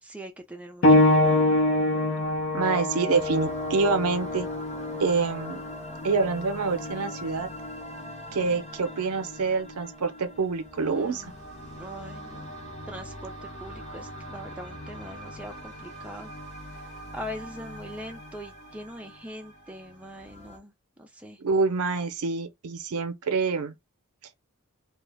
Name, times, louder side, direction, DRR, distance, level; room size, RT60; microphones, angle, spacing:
voice 1, 0.0-1.4 10.9-11.4 11.7-12.5 12.9-16.3 16.7-20.7 21.0-21.4, equal, 5° right, 0.5 m, -42 dB
sound 1, 0.8-11.1 12.0-12.1 12.9-13.0, left 1 dB, 65° left, 0.7 m, -26 dB
voice 2, 2.5-4.5 5.0-5.6 6.0-7.5 8.3-11.3 21.4-23.7, right 4 dB, 75° right, 0.6 m, -26 dB
sound 2, 3.1-20.6, equal, 30° left, 0.8 m, -43 dB
2.4 x 2.0 x 3.3 m
head